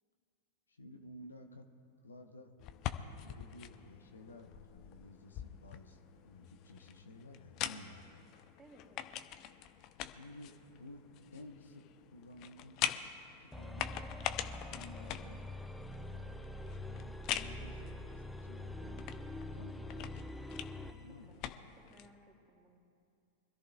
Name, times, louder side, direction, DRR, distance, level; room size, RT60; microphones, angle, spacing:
voice 1, 0.7-1.7 2.0-2.5 3.2-8.2 10.0-11.0 11.3-11.9 12.1-12.8 13.4-14.0 14.7-15.4 16.0-16.2 16.8-19.0 19.5-20.5 21.0-21.4, left 1 dB, 75° left, 4 dB, 1.0 m, -54 dB
sound 1, 2.6-22.1, left 11 dB, 40° left, 0.6 m, -44 dB
voice 2, 8.6-9.1 20.9-22.8, right 1 dB, 15° right, -1 dB, 3.0 m, -62 dB
sound 2, 13.5-21.0, left 1 dB, 5° left, 0.7 m, -45 dB
25.0 x 13.5 x 2.4 m, 2.4 s
figure-of-eight pair, 90°, 0 cm